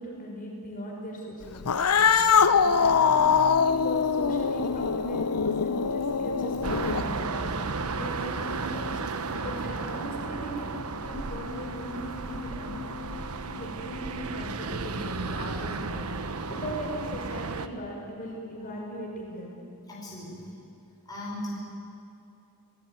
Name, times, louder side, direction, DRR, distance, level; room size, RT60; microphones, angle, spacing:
voice 1, 0.0-1.6 2.0-12.8 13.4-19.6, equal, 40° left, -1 dB, 6.4 m, -39 dB
Cat, 1.6-7.2, left 6 dB, 85° left, 0.9 m, -23 dB
sound 1, 2.4-19.0 19.3-19.6, left 4 dB, 50° right, 7.1 m, -45 dB
sound 2, 6.6-17.7, right 3 dB, 75° right, 1.2 m, -34 dB
voice 2, 19.9-20.7 21.1-21.5, left 1 dB, 20° left, -5 dB, 5.5 m, -38 dB
30.0 x 18.5 x 9.7 m, 2.8 s
head